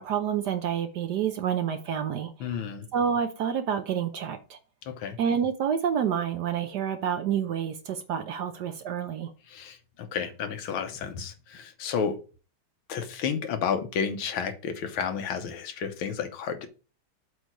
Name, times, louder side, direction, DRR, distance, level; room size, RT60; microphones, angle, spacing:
voice 1, 0.0-2.5 2.9-4.6 5.2-9.3, right 8 dB, 65° right, 1.1 m, -28 dB
voice 2, 2.4-2.9 4.8-5.2 9.5-12.2 12.9-16.7, left 7 dB, 80° left, 1.8 m, -31 dB
7.9 x 3.3 x 6.1 m
omnidirectional pair, 2.3 m